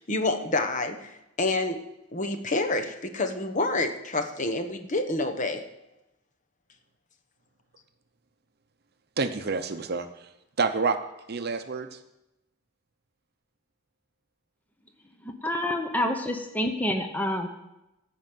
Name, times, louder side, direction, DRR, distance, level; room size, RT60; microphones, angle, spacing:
voice 1, 0.0-5.6, left 2 dB, 40° left, 6 dB, 1.1 m, -28 dB
voice 2, 9.2-10.1 10.6-11.0 11.3-12.0, right 4 dB, 50° right, 8 dB, 0.7 m, -27 dB
voice 3, 15.4-17.5, left 1 dB, 10° left, 4 dB, 0.8 m, -27 dB
15.0 x 5.2 x 7.6 m, 0.92 s
head